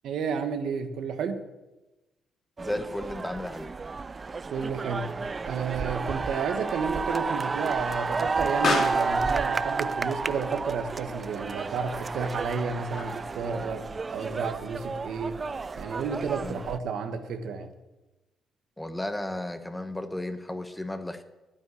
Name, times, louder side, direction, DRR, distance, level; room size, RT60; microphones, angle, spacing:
voice 1, 0.0-1.4 4.5-5.1 5.4-13.8 14.1-15.4 15.7-17.7, right 5 dB, 75° right, 7 dB, 1.5 m, -31 dB
voice 2, 2.6-3.7 16.4-16.6 18.8-21.2, left 1 dB, 10° left, 8 dB, 1.2 m, -34 dB
sound 1, 2.6-16.8, right 4 dB, 30° right, 0.5 m, -31 dB
Explosion, 4.5-13.4, left 3 dB, 55° left, 2.9 m, -37 dB
9.5 x 9.1 x 9.9 m, 1.0 s
cardioid pair, 90°, 0 cm